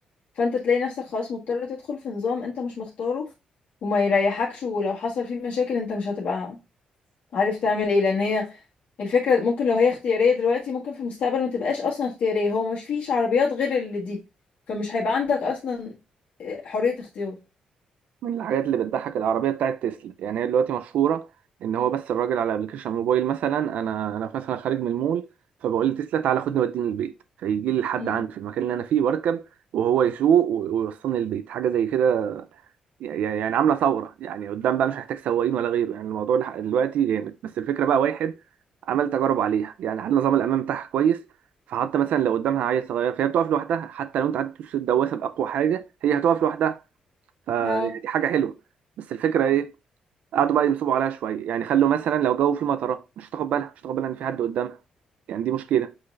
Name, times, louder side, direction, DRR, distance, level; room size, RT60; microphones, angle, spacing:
voice 1, 0.3-3.2 3.8-6.6 7.3-8.5 9.0-14.2 14.7-15.9 16.4-17.4 28.0-28.2 47.6-47.9, left 5 dB, 70° left, 1.4 m, -25 dB
voice 2, 18.2-21.3 21.6-25.3 25.6-27.1 27.4-29.4 29.7-32.4 33.0-38.3 38.9-41.2 41.7-46.8 47.5-48.5 49.0-49.7 50.3-54.8 55.3-55.9, right 9 dB, 80° right, 0.4 m, -24 dB
6.1 x 3.1 x 2.5 m
cardioid pair, 95°, 2 cm